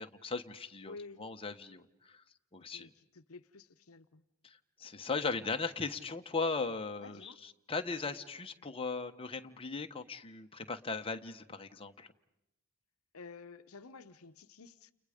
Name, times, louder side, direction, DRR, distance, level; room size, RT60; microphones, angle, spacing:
voice 1, 0.0-2.2 2.5-2.9 4.4-12.1, left 4 dB, 25° left, 1.2 m, -38 dB
voice 2, 0.8-1.3 2.7-4.2 7.0-7.4 13.1-14.9, left 4 dB, 70° left, 0.9 m, -51 dB
30.0 x 29.5 x 5.1 m
head